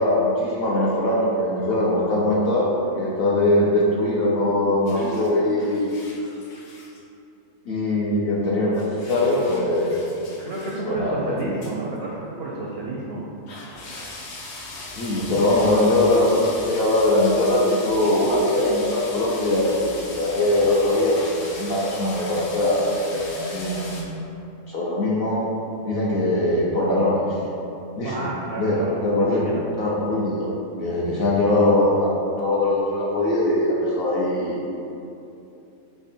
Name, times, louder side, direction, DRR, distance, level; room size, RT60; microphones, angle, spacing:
voice 1, 0.0-5.9 7.7-10.0 10.8-11.2 15.0-24.2 24.7-25.4 25.9-27.4 28.0-28.3 28.6-28.7 29.0-30.5 30.8-34.6, left 1 dB, 55° left, -5 dB, 0.7 m, -21 dB
sound 1, 4.9-7.0 8.7-10.8 11.4-11.7 12.0-12.1 12.9-13.0 13.5-24.0, left 2 dB, 75° left, 1.1 m, -38 dB
voice 2, 10.4-13.2 28.0-29.6, right 2 dB, 65° right, -4 dB, 0.6 m, -30 dB
3.5 x 3.5 x 4.2 m, 2.8 s
omnidirectional pair, 1.5 m